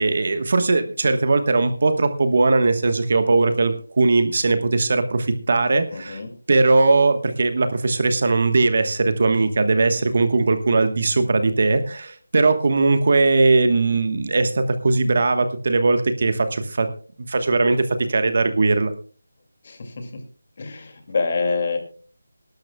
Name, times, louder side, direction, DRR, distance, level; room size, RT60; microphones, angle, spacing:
voice 1, 0.0-6.2 6.5-16.9 17.3-18.9, right 3 dB, 40° right, 9 dB, 1.2 m, -19 dB
voice 2, 5.9-6.3 19.6-20.2 20.6-21.8, left 4 dB, 35° left, 5 dB, 2.3 m, -26 dB
22.0 x 12.0 x 2.3 m, 0.41 s
figure-of-eight pair, 175°, 0 cm